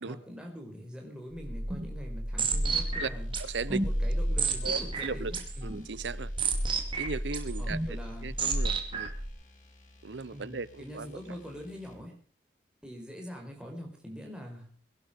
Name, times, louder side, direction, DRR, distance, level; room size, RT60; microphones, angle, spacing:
voice 1, 0.1-3.3 3.7-5.8 7.6-8.3 10.3-12.1 12.8-14.7, equal, 5° right, 4.7 m, -44 dB
sound 1, 1.3-9.3, right 2 dB, 30° right, 2.5 m, -31 dB
sound 2, 2.9-12.0, left 1 dB, 45° left, 3.5 m, -57 dB
voice 2, 3.4-3.8 4.6-5.3 5.6-6.3 7.0-9.1 10.0-11.2, right 4 dB, 85° right, 0.8 m, -37 dB
22.0 x 11.5 x 5.2 m
head